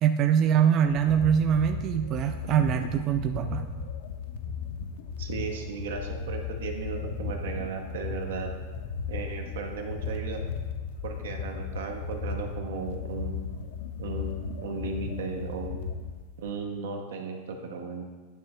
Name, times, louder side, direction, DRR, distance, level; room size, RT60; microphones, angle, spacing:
voice 1, 0.0-3.7, right 8 dB, 35° right, 7 dB, 0.3 m, -23 dB
sound 1, 0.8-16.5, left 5 dB, 70° left, 0.6 m, -36 dB
voice 2, 5.2-8.5 9.1-10.4 11.0-13.4 14.0-15.9 16.4-18.0, right 4 dB, 85° right, 3 dB, 0.9 m, -35 dB
9.2 x 3.2 x 4.4 m, 1.4 s
supercardioid pair, 140°, 0 cm